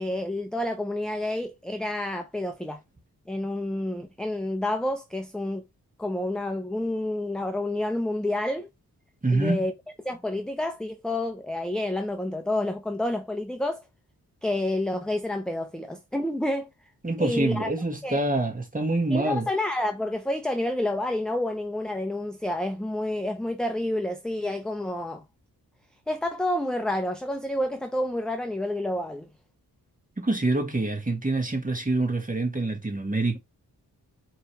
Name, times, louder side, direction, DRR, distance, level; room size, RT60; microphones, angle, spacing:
voice 1, 0.0-2.8 3.3-5.6 6.0-8.7 9.3-9.7 10.0-13.8 14.4-16.7 17.2-17.7 18.0-18.2 19.1-25.2 26.1-29.3, left 1 dB, ahead, 0.6 m, -29 dB
voice 2, 9.2-9.6 17.0-19.5 30.2-33.4, right 2 dB, 20° right, 1.8 m, -26 dB
4.6 x 3.2 x 3.2 m
cardioid pair, 60°, 37 cm